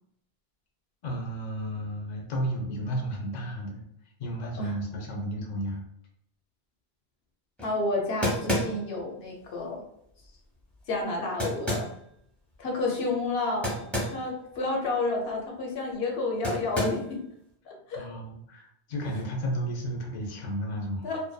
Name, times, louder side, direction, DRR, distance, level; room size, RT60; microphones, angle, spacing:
voice 1, 1.0-3.8 4.2-5.8 18.0-21.1, equal, 50° left, -1 dB, 0.6 m, -33 dB
voice 2, 7.6-9.8 10.9-11.9 12.6-13.8 14.1-17.2 17.6-18.0 21.0-21.2, left 2 dB, 80° left, -1 dB, 0.9 m, -30 dB
sound 1, 7.6-7.7 8.2-9.0 11.4-12.0 13.6-14.2 14.5-14.6 16.4-17.1, left 1 dB, ahead, 0.7 m, -29 dB
2.6 x 2.1 x 2.2 m, 0.74 s
omnidirectional pair, 1.0 m